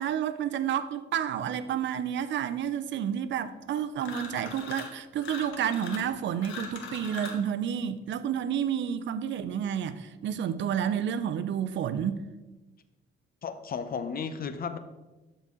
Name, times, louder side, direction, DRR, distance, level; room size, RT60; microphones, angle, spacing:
voice 1, 0.0-12.2, right 9 dB, 65° right, 0.6 m, -30 dB
sound 1, 4.0-4.9 5.2-7.5, left 4 dB, 80° left, 1.4 m, -41 dB
voice 2, 13.4-14.8, left 6 dB, 50° left, 0.7 m, -34 dB
11.5 x 4.1 x 3.7 m
cardioid pair, 90°, 20 cm